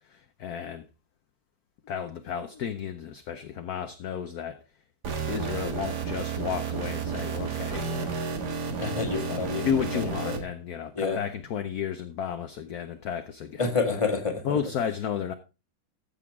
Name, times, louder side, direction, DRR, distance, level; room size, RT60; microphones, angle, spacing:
voice 1, 0.1-0.8 1.8-4.6 5.3-8.1 9.6-13.7 13.9-14.0 14.4-15.3, left 8 dB, 60° left, 1.1 m, -32 dB
sound 1, 5.0-10.4, right 5 dB, 55° right, 2.1 m, -31 dB
voice 2, 8.8-9.7 9.9-10.4 10.9-11.2 13.6-14.6, left 4 dB, 15° left, 1.7 m, -28 dB
14.5 x 7.0 x 3.5 m
omnidirectional pair, 2.2 m